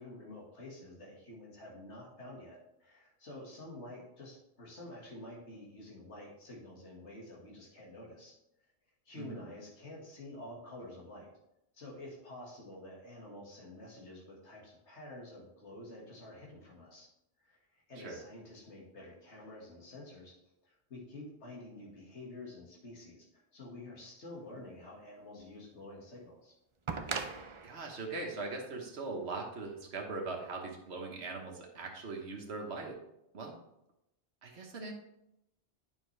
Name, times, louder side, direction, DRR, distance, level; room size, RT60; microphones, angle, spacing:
voice 1, 0.0-8.3 9.1-11.3 11.7-17.1 17.4-20.3 20.6-23.3 23.5-26.5, left 1 dB, 85° left, -3 dB, 2.1 m, -49 dB
voice 2, 9.1-9.5 18.0-18.2 27.6-33.0 33.3-33.5 34.4-34.9, right 3 dB, 70° right, 1 dB, 1.5 m, -40 dB
sound 1, 25.4-25.5 26.9-29.7 30.9-31.0, right 4 dB, 35° right, 0.5 m, -41 dB
9.3 x 5.9 x 3.3 m, 0.84 s
omnidirectional pair, 1.1 m